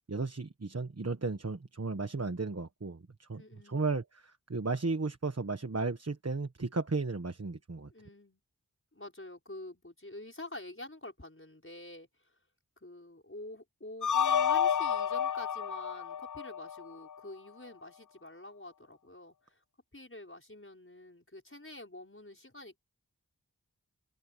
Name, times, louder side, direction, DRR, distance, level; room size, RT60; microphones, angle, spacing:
voice 1, 0.1-7.9, right 3 dB, 45° right, 1.3 m, -34 dB
voice 2, 3.4-3.8 7.9-8.4 8.9-12.4 12.8-19.6 19.9-22.8, left 1 dB, 35° left, 5.7 m, -47 dB
sound 1, 14.0-17.1, left 8 dB, 60° left, 0.6 m, -30 dB
wide cardioid pair, 40°, 34 cm